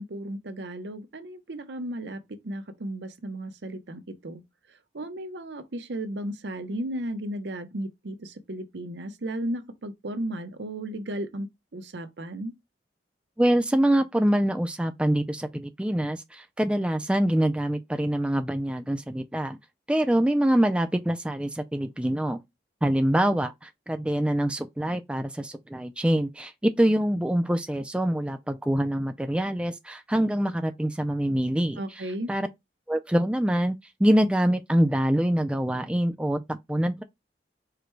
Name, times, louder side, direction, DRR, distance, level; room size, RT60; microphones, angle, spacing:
voice 1, 0.0-4.4 4.9-12.5 31.8-32.3, right 1 dB, 80° right, 0.7 m, -35 dB
voice 2, 13.4-19.6 19.9-22.4 22.8-23.5 23.9-31.8 32.3-32.5 32.9-37.0, right 1 dB, 5° right, 0.3 m, -25 dB
4.9 x 2.2 x 4.5 m
head